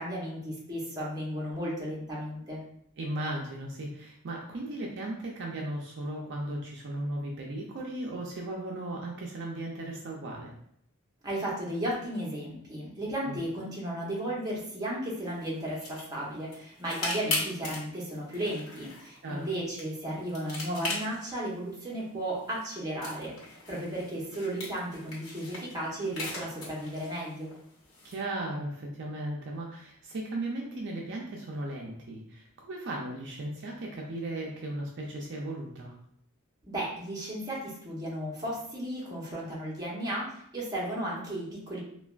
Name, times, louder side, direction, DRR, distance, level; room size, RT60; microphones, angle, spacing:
voice 1, 0.0-2.6 11.2-27.5 36.6-41.8, right 1 dB, 20° right, -5 dB, 0.9 m, -34 dB
voice 2, 3.0-10.5 13.3-13.4 19.2-19.5 28.0-35.9, right 1 dB, 55° right, -1 dB, 0.4 m, -36 dB
sound 1, 15.2-28.2, left 3 dB, 65° left, 1.0 m, -40 dB
3.3 x 2.2 x 2.4 m, 0.71 s
head